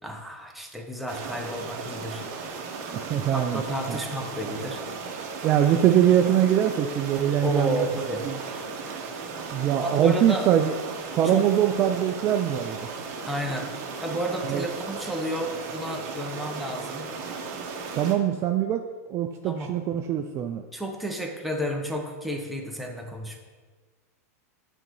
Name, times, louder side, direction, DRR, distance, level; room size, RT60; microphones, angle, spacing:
voice 1, 0.0-2.2 3.3-4.8 7.4-8.2 9.8-10.5 11.2-11.4 13.3-13.7 14.0-17.1 19.4-19.7 20.7-23.4, equal, ahead, 0 dB, 0.8 m, -31 dB
sound 1, 1.1-18.1, right 4 dB, 50° right, 1.1 m, -36 dB
voice 2, 2.9-3.6 3.9-4.0 5.4-7.9 8.2-8.4 9.5-10.7 11.1-12.8 14.5-14.6 18.0-18.8 19.1-20.6, right 10 dB, 30° right, 5 dB, 0.3 m, -22 dB
8.9 x 4.0 x 3.0 m, 1.4 s
supercardioid pair, 130°, 9 cm